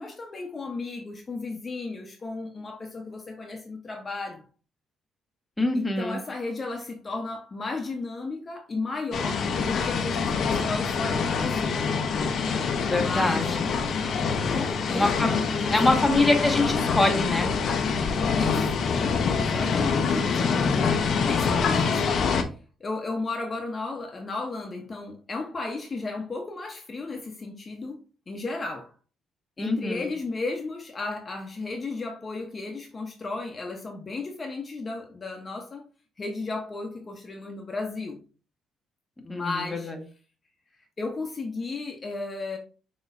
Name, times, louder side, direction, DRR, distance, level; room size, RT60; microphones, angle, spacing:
voice 1, 0.0-4.4 5.7-11.8 12.9-13.6 14.5-16.0 18.2-19.0 19.3-28.0 28.3-28.9 29.6-35.8 36.2-38.2 39.2-39.9 41.0-42.6, left 3 dB, 35° left, 0.9 m, -34 dB
voice 2, 5.6-6.2 12.8-13.7 14.9-17.5 29.6-30.1 39.3-40.0, left 2 dB, 10° left, 1.1 m, -25 dB
sound 1, 9.1-22.4, left 5 dB, 60° left, 0.7 m, -25 dB
6.0 x 3.1 x 2.6 m
cardioid pair, 90°, 0 cm